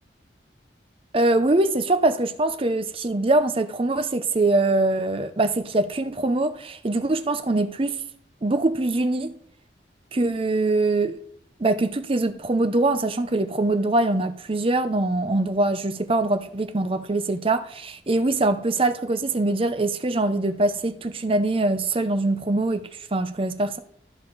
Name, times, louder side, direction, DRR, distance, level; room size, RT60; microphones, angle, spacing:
voice 1, 1.1-8.0 8.4-9.3 10.1-11.2 11.6-23.8, right 2 dB, 30° right, 0.6 m, -23 dB
13.5 x 4.9 x 4.0 m
head